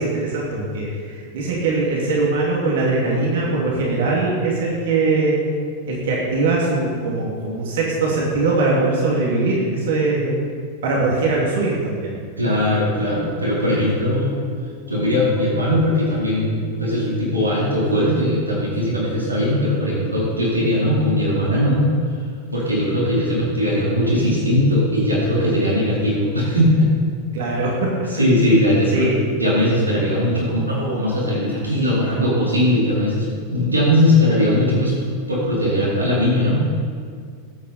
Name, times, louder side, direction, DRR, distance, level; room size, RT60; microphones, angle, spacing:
voice 1, 0.0-5.3 5.9-10.4 10.8-12.1 27.3-27.9 28.9-29.2, right 3 dB, 55° right, -4 dB, 2.9 m, -21 dB
voice 2, 12.4-14.4 14.9-21.9 22.5-26.9 28.1-34.9 35.3-36.7, left 1 dB, 80° right, -6 dB, 4.2 m, -19 dB
21.0 x 8.8 x 4.5 m, 2.1 s
figure-of-eight pair, 90°, 0 cm